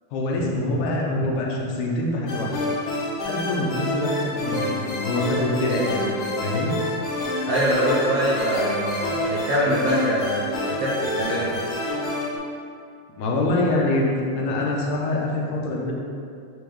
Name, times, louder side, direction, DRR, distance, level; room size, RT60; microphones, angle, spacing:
voice 1, 0.1-2.6 3.2-6.7 13.1-15.9, left 2 dB, 85° left, -3 dB, 2.4 m, -25 dB
sound 1, 2.3-12.4, left 1 dB, 70° left, 1.3 m, -27 dB
voice 2, 7.5-11.6, right 1 dB, 75° right, -7 dB, 1.4 m, -24 dB
8.7 x 3.5 x 3.5 m, 2.4 s
omnidirectional pair, 3.6 m